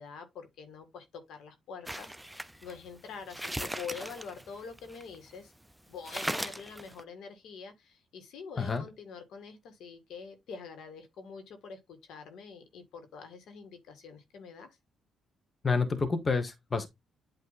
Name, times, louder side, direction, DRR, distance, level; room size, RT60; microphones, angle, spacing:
voice 1, 0.0-5.5 5.9-14.8, left 5 dB, 75° left, 1.8 m, -45 dB
sound 1, 1.9-5.4 5.7-5.8 6.0-7.0, right 1 dB, 5° right, 0.6 m, -38 dB
voice 2, 15.6-16.9, left 4 dB, 30° left, 1.3 m, -28 dB
8.3 x 3.0 x 4.1 m
cardioid pair, 90°, 0 cm